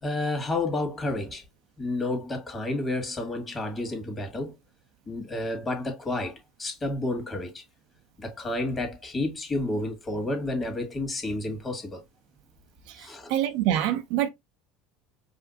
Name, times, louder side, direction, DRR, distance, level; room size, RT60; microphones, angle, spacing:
voice 1, 0.0-1.4 1.8-4.6 5.1-7.6 8.2-12.0 13.0-13.3, left 2 dB, 25° left, 1.8 m, -30 dB
voice 2, 12.9-14.3, right 12 dB, 65° right, 0.6 m, -26 dB
4.9 x 2.5 x 2.6 m
hypercardioid pair, 75°, 0 cm